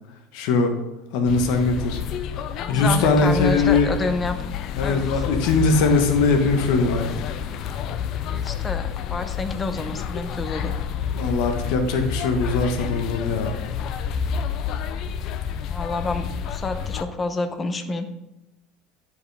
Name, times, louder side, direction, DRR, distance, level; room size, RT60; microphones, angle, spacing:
voice 1, 0.3-0.7 1.1-2.0 2.7-3.9 4.8-7.1 11.1-13.6, left 3 dB, 70° left, 5 dB, 1.3 m, -21 dB
sound 1, 1.3-17.0, left 7 dB, 50° left, 0.5 m, -29 dB
voice 2, 2.6-4.4 4.8-5.2 8.3-10.7 15.7-18.1, left 3 dB, 20° left, 8 dB, 0.7 m, -28 dB
10.5 x 5.2 x 3.4 m, 0.92 s
supercardioid pair, 130°, 0 cm